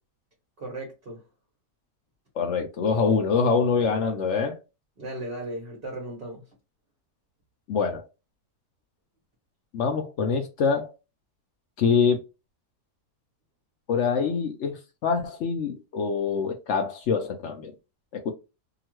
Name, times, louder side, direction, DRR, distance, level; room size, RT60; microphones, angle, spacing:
voice 1, 0.6-1.2 5.0-6.4, right 1 dB, 40° right, 1.1 m, -36 dB
voice 2, 2.4-4.6 7.7-8.0 9.7-10.9 11.8-12.2 13.9-17.7 18.1-18.3, left 5 dB, 70° left, 0.7 m, -25 dB
2.8 x 2.4 x 2.9 m
omnidirectional pair, 1.7 m